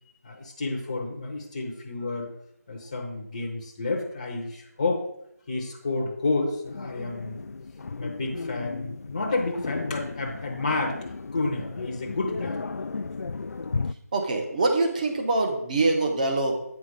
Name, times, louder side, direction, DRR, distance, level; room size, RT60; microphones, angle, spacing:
voice 1, 0.2-2.3 2.7-5.1 5.5-7.4 8.0-12.7, left 3 dB, 25° left, 0 dB, 0.8 m, -30 dB
sound 1, 6.6-13.9, left 4 dB, 65° left, 0.3 m, -35 dB
voice 2, 14.1-16.6, right 2 dB, 25° right, 3 dB, 1.0 m, -24 dB
8.3 x 4.2 x 5.2 m, 0.76 s
figure-of-eight pair, 170°, 9 cm